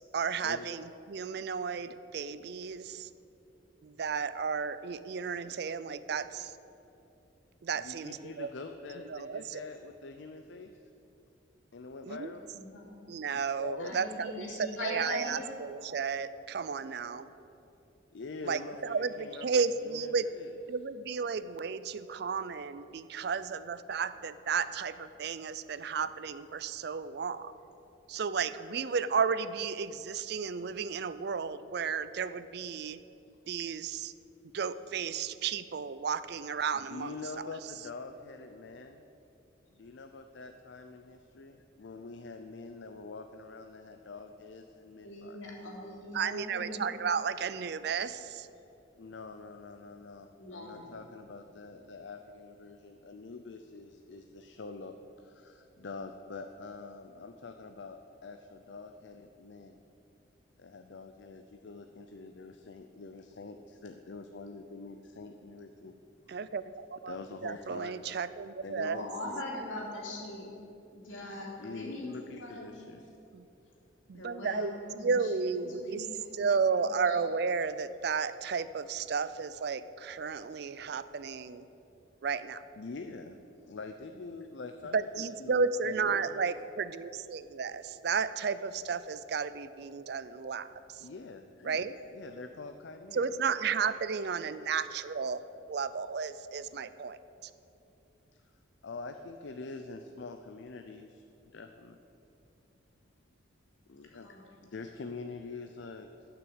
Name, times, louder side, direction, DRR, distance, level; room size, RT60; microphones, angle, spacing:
voice 1, 0.0-3.1 3.8-6.6 7.6-8.5 9.1-9.6 12.0-12.3 13.1-17.3 18.4-20.3 20.7-27.5 28.1-33.0 33.5-34.1 34.5-37.4 46.1-48.5 66.3-67.2 67.4-69.0 73.3-73.5 74.1-74.7 75.0-76.1 76.4-81.7 82.2-82.6 84.9-91.1 91.6-92.0 93.1-95.4 95.7-97.5, right 5 dB, 55° right, 14 dB, 0.4 m, -33 dB
voice 2, 7.8-10.9 11.7-12.5 13.3-14.0 18.1-20.5 36.7-39.0 39.7-45.4 49.0-59.8 60.6-66.0 66.3-66.4 67.1-68.0 68.6-69.4 71.6-73.1 73.6-73.7 82.8-86.5 91.0-93.4 94.5-94.6 98.8-101.2 101.5-102.0 103.9-106.1, left 3 dB, 65° left, 6 dB, 0.5 m, -45 dB
voice 3, 12.5-12.9 13.8-15.5 45.0-46.9 50.4-51.0 68.8-70.5 70.9-72.7 74.1-77.2 104.0-104.7, left 1 dB, 85° left, -3 dB, 2.8 m, -42 dB
12.5 x 6.0 x 8.0 m, 2.8 s
head